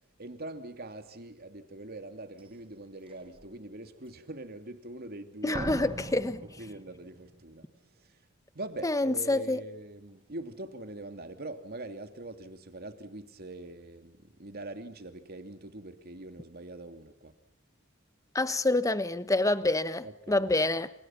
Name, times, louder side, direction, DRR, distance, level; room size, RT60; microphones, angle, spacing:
voice 1, 0.2-5.7 6.6-8.2 8.5-17.3 20.0-20.5, right 2 dB, 50° right, 2.8 m, -43 dB
Slam, 2.4-2.5 3.1-3.5 5.5-7.4 7.7-7.8, right 1 dB, 25° right, 1.1 m, -41 dB
voice 2, 5.4-6.4 8.8-9.6 18.3-20.9, left 2 dB, 15° left, 1.3 m, -27 dB
29.5 x 28.0 x 5.9 m
head